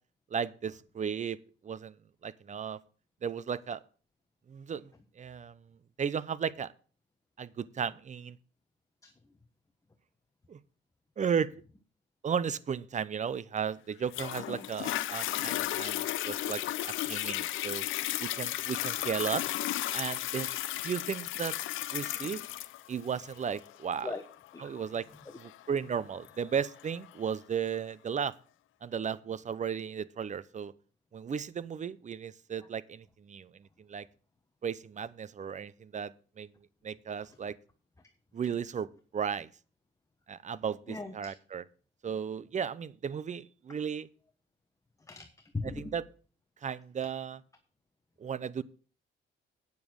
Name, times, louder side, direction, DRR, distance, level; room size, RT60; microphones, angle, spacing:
voice 1, 0.3-1.4 1.6-2.0 2.2-2.8 3.2-3.8 4.5-5.6 6.0-6.7 7.4-8.4 10.5-10.6 11.2-11.5 12.2-17.8 18.2-19.4 19.9-20.5 20.8-21.5 21.9-22.4 22.9-24.1 24.6-25.1 25.7-28.3 28.8-30.7 31.1-34.1 34.6-36.5 36.8-37.6 38.3-38.9 39.1-39.5 40.3-41.6 42.0-44.1 45.8-46.0 46.6-47.4 48.2-48.6, right 7 dB, 35° right, 18 dB, 0.7 m, -35 dB
voice 2, 9.0-9.4 14.5-14.6 24.0-24.2 24.5-24.7 25.1-25.3 32.5-32.7 37.3-37.4 40.9-41.3 45.0-45.9 47.0-47.1, left 3 dB, 15° left, 6 dB, 1.2 m, -40 dB
Toilet flush, 14.1-27.1 27.7-27.8, left 14 dB, 80° left, 0.7 m, -35 dB
9.4 x 7.1 x 6.3 m, 0.39 s
cardioid pair, 90°, 20 cm